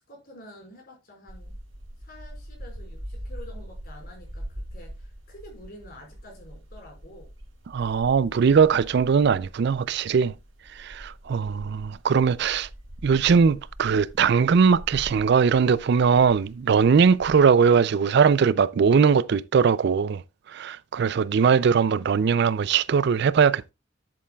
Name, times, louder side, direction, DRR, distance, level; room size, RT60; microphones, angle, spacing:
voice 1, 0.1-1.5 2.0-7.3, left 1 dB, 50° left, 5.1 m, -48 dB
sound 1, 1.3-17.4, equal, 85° right, 4.2 m, -43 dB
voice 2, 7.7-10.3 10.8-12.7 13.0-20.2 20.5-23.7, right 6 dB, 60° right, 0.4 m, -20 dB
10.5 x 8.4 x 2.3 m
head